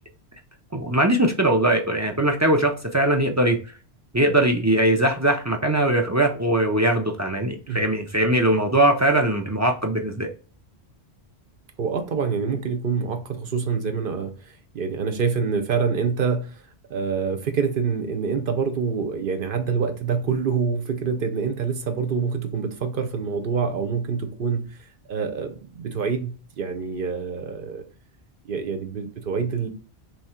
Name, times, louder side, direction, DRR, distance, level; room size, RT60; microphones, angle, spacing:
voice 1, 0.7-3.6 4.1-10.3, right 1 dB, 25° right, 0.4 m, -21 dB
voice 2, 11.8-16.6 16.9-24.8 25.1-27.8 28.5-29.7, right 5 dB, 60° right, 0.8 m, -26 dB
3.5 x 3.1 x 4.2 m
omnidirectional pair, 1.1 m